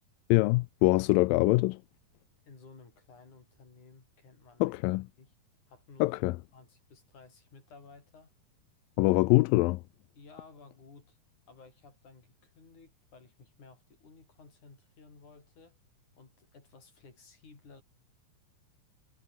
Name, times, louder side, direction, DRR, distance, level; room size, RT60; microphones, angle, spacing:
voice 1, 0.3-1.8 4.6-5.1 6.0-6.4 9.0-9.8, left 22 dB, 80° left, 2.2 m, -24 dB
voice 2, 2.5-4.8 5.2-5.3 5.7-6.2 6.5-8.4 10.2-11.2 11.5-15.8 16.2-17.8, left 4 dB, 55° left, 7.7 m, -55 dB
omnidirectional pair, 4.3 m